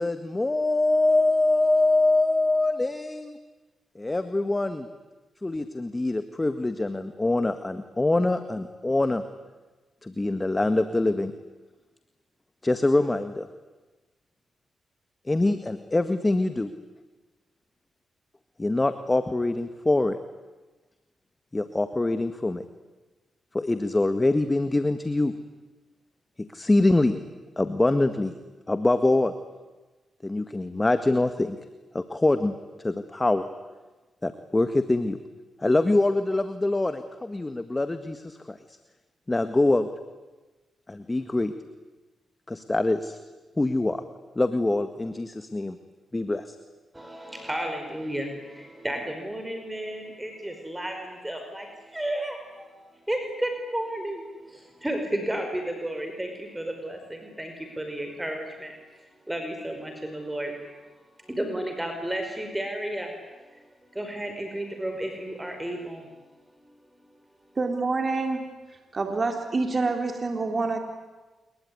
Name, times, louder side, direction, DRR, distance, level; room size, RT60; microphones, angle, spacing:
voice 1, 0.0-3.4 3.9-4.9 5.4-9.2 10.0-11.3 12.6-13.5 15.3-16.7 18.6-20.2 21.5-22.6 23.5-25.3 26.4-27.2 27.6-28.3 28.7-29.3 30.2-31.6 31.9-32.5 32.8-33.5 34.2-35.2 35.6-38.6 39.3-39.9 40.9-41.5 42.5-43.2 43.6-44.0 44.3-45.8 46.1-46.5, left 2 dB, 25° left, 10 dB, 1.8 m, -24 dB
voice 2, 46.9-60.5 61.2-63.1 63.5-63.6 63.9-66.2 66.5-66.6, right 1 dB, 15° right, 4 dB, 5.4 m, -33 dB
voice 3, 67.6-68.4 68.9-70.8, right 3 dB, 40° right, 5 dB, 3.7 m, -26 dB
27.0 x 22.5 x 9.8 m, 1.2 s
supercardioid pair, 55°, 0 cm